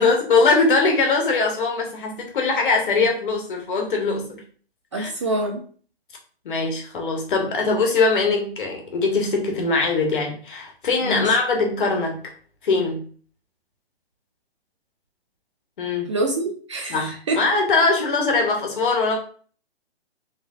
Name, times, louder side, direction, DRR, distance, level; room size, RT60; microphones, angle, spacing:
voice 1, 0.0-4.4 5.0-5.1 6.4-12.2 12.6-13.0 15.8-16.1 16.9-19.2, left 3 dB, 50° left, 1 dB, 1.3 m, -21 dB
voice 2, 4.9-5.6 11.0-11.3 16.1-17.4, right 2 dB, 30° right, 3 dB, 0.4 m, -26 dB
3.8 x 3.2 x 2.3 m, 0.44 s
figure-of-eight pair, 135°, 32 cm